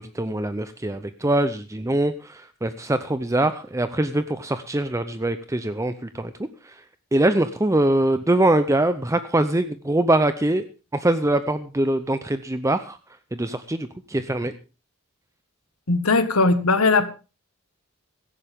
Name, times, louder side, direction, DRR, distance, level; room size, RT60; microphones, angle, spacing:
voice 1, 0.0-6.3 6.6-6.8 7.1-10.6 10.9-13.0 13.3-14.5, right 1 dB, 15° right, 11 dB, 0.6 m, -23 dB
voice 2, 15.9-17.1, left 3 dB, 90° left, 11 dB, 1.7 m, -19 dB
17.0 x 15.0 x 3.6 m, 0.32 s
head